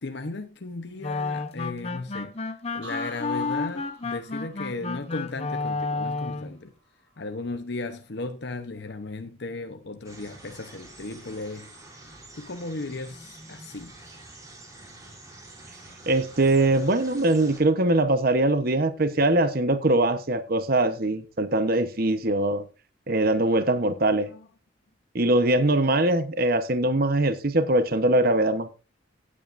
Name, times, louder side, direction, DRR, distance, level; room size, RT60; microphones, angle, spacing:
voice 1, 0.0-6.7 7.2-11.7 12.4-14.0 24.1-24.5, left 3 dB, 60° left, 0.9 m, -36 dB
sound 1, 1.0-6.6, left 3 dB, 35° left, 0.9 m, -31 dB
sound 2, 2.8-6.6 7.0-7.5, right 1 dB, 70° right, 7.4 m, -47 dB
sound 3, 10.0-17.6, right 2 dB, 20° right, 3.6 m, -47 dB
voice 2, 16.1-22.7 23.1-24.3 25.1-28.7, right 2 dB, 50° right, 1.0 m, -22 dB
16.5 x 8.8 x 2.6 m
head